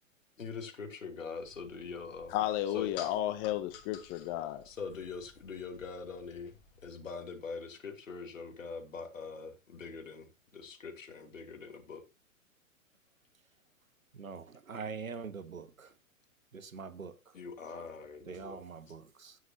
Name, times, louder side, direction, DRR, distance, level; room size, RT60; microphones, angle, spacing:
voice 1, 0.4-2.4 2.7-2.9 4.6-6.5 6.8-10.3 10.5-12.0 17.3-18.6 18.9-19.0, left 5 dB, 70° left, 2.9 m, -43 dB
sound 1, 1.4-6.9, left 7 dB, 40° left, 2.9 m, -53 dB
voice 2, 2.3-4.6, left 13 dB, 15° left, 0.5 m, -33 dB
voice 3, 14.1-15.9 16.5-17.1 18.3-19.4, right 5 dB, 80° right, 1.4 m, -43 dB
17.0 x 6.4 x 2.8 m
figure-of-eight pair, 115°, 40 cm